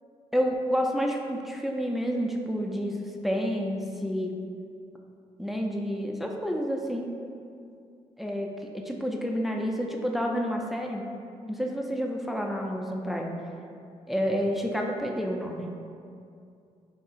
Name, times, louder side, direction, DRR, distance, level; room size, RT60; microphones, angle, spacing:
voice 1, 0.3-4.3 5.4-7.1 8.2-11.0 11.5-13.4 14.1-15.7, equal, ahead, 1 dB, 0.4 m, -29 dB
3.7 x 2.8 x 2.4 m, 2.5 s
supercardioid pair, 50°, 15 cm